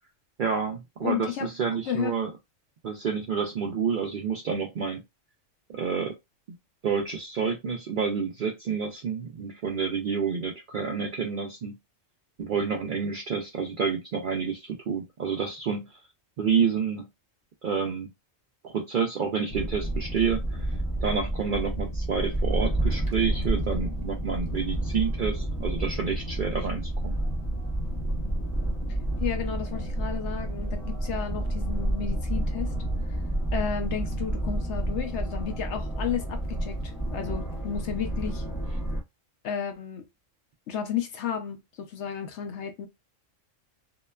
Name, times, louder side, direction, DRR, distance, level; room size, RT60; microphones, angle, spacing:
voice 1, 0.4-2.3 2.8-5.0 5.7-6.1 6.8-11.7 12.4-15.9 16.4-17.1 17.6-18.1 18.6-20.6 21.0-27.2, right 6 dB, 60° right, 0.5 m, -29 dB
voice 2, 1.0-1.5 1.9-2.1 29.2-32.7 33.5-38.4 39.4-40.1 40.7-42.9, left 8 dB, 70° left, 0.9 m, -32 dB
sound 1, 19.5-39.0, right 1 dB, 30° left, 0.4 m, -30 dB
2.8 x 2.1 x 2.2 m
omnidirectional pair, 1.3 m